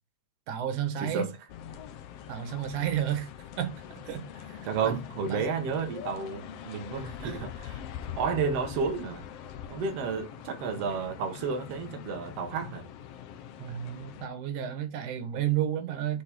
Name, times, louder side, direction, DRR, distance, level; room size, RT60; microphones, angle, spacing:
voice 1, 0.5-1.3 2.3-3.3 3.6-5.0 5.3-5.5 7.2-7.4 13.6-16.2, right 10 dB, 90° right, 2.8 m, -32 dB
voice 2, 1.0-1.3 4.6-7.8 8.2-9.3 9.7-12.9, right 5 dB, 60° right, 2.3 m, -31 dB
sound 1, 1.5-14.3, left 9 dB, 70° left, 1.6 m, -43 dB
7.9 x 4.2 x 3.6 m
omnidirectional pair, 3.4 m